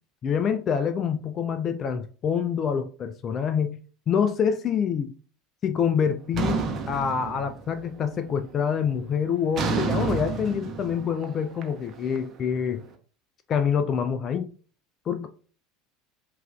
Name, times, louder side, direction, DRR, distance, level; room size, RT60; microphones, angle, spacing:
voice 1, 0.2-3.8 4.1-5.1 5.6-12.8 13.5-14.5 15.1-15.3, left 7 dB, 40° left, 0.3 m, -26 dB
sound 1, 6.3-7.9 8.2-8.7 9.5-12.6, right 5 dB, 40° right, 0.8 m, -30 dB
5.4 x 2.5 x 2.3 m
hypercardioid pair, 75°, 0 cm